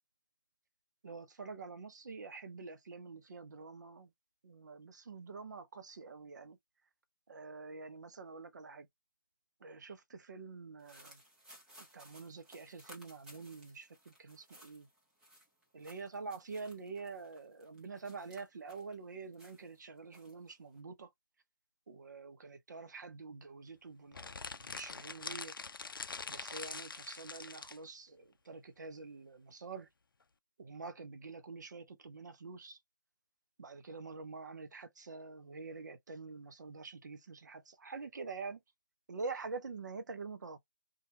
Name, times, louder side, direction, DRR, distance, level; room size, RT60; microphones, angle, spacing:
voice 1, 1.0-4.1 4.4-6.6 7.3-8.9 9.6-11.2 11.9-14.9 15.7-21.1 21.9-25.5 26.3-29.9 30.6-32.8 33.6-38.6 39.1-40.6, right 4 dB, 55° right, 0.6 m, -46 dB
sound 1, 10.8-18.9 19.3-20.8, equal, 5° right, 0.9 m, -60 dB
sound 2, 24.1-27.8, left 4 dB, 80° left, 0.4 m, -44 dB
2.8 x 2.3 x 2.8 m
figure-of-eight pair, 150°, 11 cm